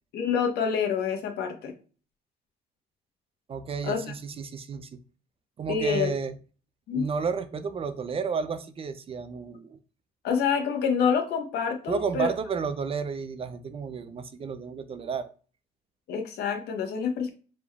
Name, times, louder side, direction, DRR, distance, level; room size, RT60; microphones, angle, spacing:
voice 1, 0.1-1.7 3.8-4.1 5.7-6.1 6.9-7.1 10.2-12.3 16.1-17.3, left 6 dB, 75° left, 4 dB, 1.1 m, -27 dB
voice 2, 3.5-4.9 5.6-6.3 6.9-9.8 11.9-15.3, right 5 dB, 35° right, 11 dB, 0.5 m, -32 dB
4.9 x 3.7 x 2.3 m, 0.38 s
cardioid pair, 110°, 17 cm